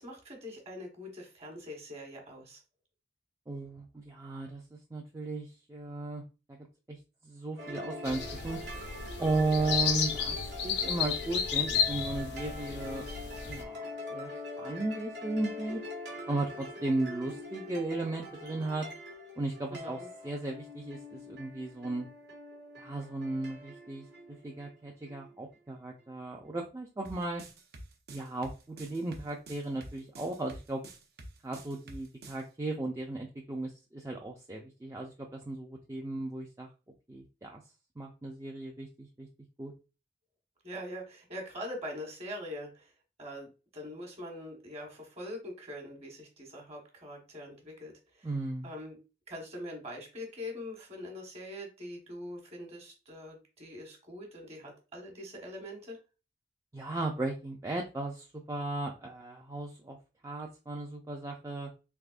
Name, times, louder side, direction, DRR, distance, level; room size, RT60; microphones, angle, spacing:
voice 1, 0.0-2.6 9.3-9.7 19.7-20.1 40.6-42.9 43.2-48.3 48.6-49.0 49.3-56.0, left 1 dB, 35° right, 0 dB, 1.2 m, -43 dB
voice 2, 3.5-6.6 6.9-8.6 9.2-10.4 10.6-13.1 13.5-15.8 16.3-18.9 19.4-20.0 20.2-22.1 22.8-24.0 24.4-27.4 28.1-30.8 31.4-36.7 37.1-37.6 38.0-39.3 39.6-39.7 48.2-48.7 56.7-60.0 60.2-61.7, right 2 dB, 15° right, -1 dB, 0.4 m, -36 dB
sound 1, 7.6-25.4, left 2 dB, 80° right, 1.1 m, -44 dB
sound 2, 8.0-13.6, left 7 dB, 75° left, 0.5 m, -33 dB
sound 3, 27.0-32.4, right 2 dB, 60° right, 0.6 m, -48 dB
3.5 x 3.3 x 2.4 m, 0.32 s
head